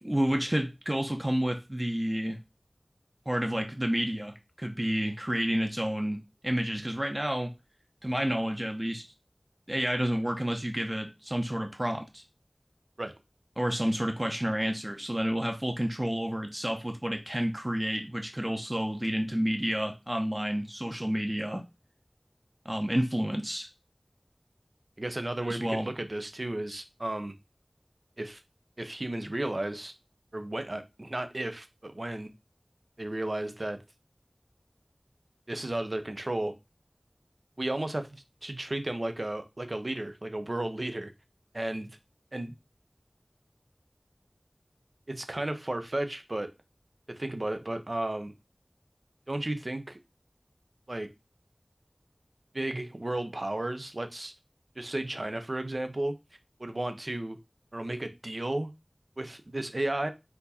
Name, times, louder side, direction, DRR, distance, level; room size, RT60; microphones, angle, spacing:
voice 1, 0.0-2.4 3.3-7.5 8.0-9.0 9.7-12.2 13.6-21.6 22.6-23.7 25.5-25.9, equal, 25° right, 0.8 m, -30 dB
voice 2, 25.0-27.3 28.2-28.4 28.8-29.9 30.3-32.3 33.0-33.8 35.5-36.5 37.6-41.1 41.5-42.0 42.3-42.6 45.1-46.5 47.1-48.3 49.3-50.0 50.9-51.1 52.5-54.3 54.8-56.1 56.6-57.4 57.7-58.7 59.2-60.1, right 1 dB, 60° right, 0.6 m, -33 dB
4.3 x 2.7 x 4.1 m
wide cardioid pair, 40°, 0 cm